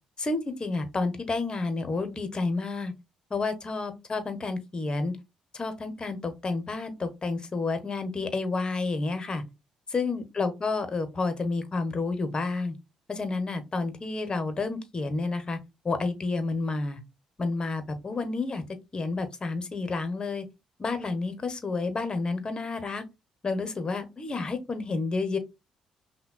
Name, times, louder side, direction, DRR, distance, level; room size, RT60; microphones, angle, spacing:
voice 1, 0.2-2.9 3.3-5.2 5.5-9.4 9.9-12.8 13.1-15.6 15.8-17.0 17.4-18.6 18.9-20.5 20.8-23.0 23.4-25.4, left 3 dB, 35° left, 1.0 m, -30 dB
5.6 x 2.2 x 2.3 m
hypercardioid pair, 45°, 3 cm